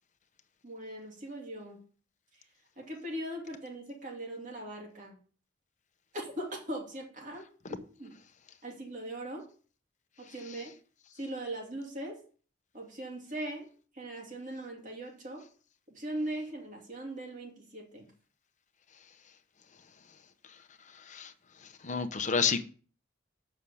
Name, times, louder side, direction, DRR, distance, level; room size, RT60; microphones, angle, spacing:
voice 1, 0.6-1.8 2.8-5.2 6.1-8.1 8.6-9.5 10.2-10.7 11.1-12.2 12.7-13.7 13.9-15.5 15.9-18.1, right 1 dB, 40° right, 2.6 m, -40 dB
voice 2, 21.8-22.6, left 6 dB, 40° left, 0.9 m, -29 dB
7.2 x 6.2 x 7.0 m
head